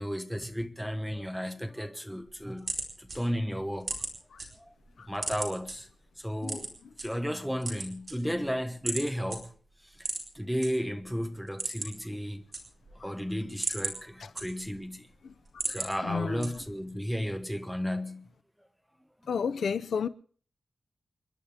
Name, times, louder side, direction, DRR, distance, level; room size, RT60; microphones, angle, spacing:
voice 1, 0.0-2.7 3.0-4.0 4.6-4.7 5.1-5.9 6.2-6.7 7.0-9.5 10.0-10.1 10.3-12.4 13.0-15.1 15.7-18.3, equal, ahead, 1.2 m, -33 dB
sound 1, 2.2-4.5 4.8-5.7 6.4-7.1 7.5-8.5 8.9-9.0 9.3-9.4 10.0-10.7 11.0-11.1 11.4-12.1 12.3-13.0 13.4-14.9 15.3-15.9 16.4-16.8, right 3 dB, 35° right, 4.5 m, -35 dB
voice 2, 15.7-16.6 19.3-20.1, left 6 dB, 80° left, 0.7 m, -33 dB
29.0 x 11.0 x 3.5 m
wide cardioid pair, 135°, 0 cm